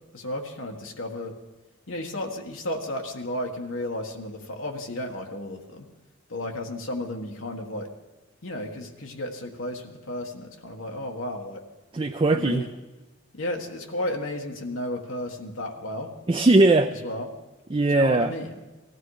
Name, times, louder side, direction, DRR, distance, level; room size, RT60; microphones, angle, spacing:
voice 1, 0.1-1.3 1.9-5.9 6.3-7.9 8.4-11.6 12.3-12.7 13.3-16.1 17.0-17.3 17.9-18.5, left 1 dB, 90° left, 1 dB, 1.6 m, -33 dB
voice 2, 11.9-12.7 16.3-17.0 17.7-18.3, right 2 dB, 25° right, 5 dB, 0.5 m, -19 dB
18.5 x 15.0 x 4.9 m, 1.1 s
head